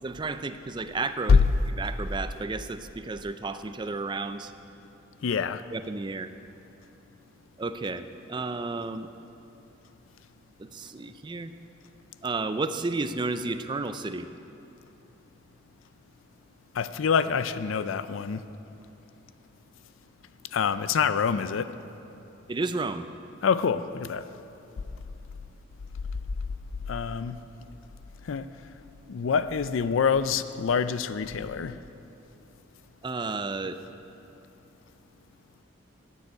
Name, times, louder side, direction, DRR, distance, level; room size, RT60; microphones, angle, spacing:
voice 1, 0.0-4.5 5.7-6.3 7.6-9.1 10.6-11.5 12.2-14.3 22.5-23.0 33.0-33.8, right 3 dB, 25° right, 10 dB, 0.4 m, -32 dB
voice 2, 5.2-5.6 16.7-18.5 20.5-21.8 23.4-24.3 26.9-27.4 28.2-28.5 29.1-31.8, left 6 dB, 80° left, 13 dB, 0.4 m, -25 dB
12.0 x 6.8 x 9.6 m, 2.9 s
head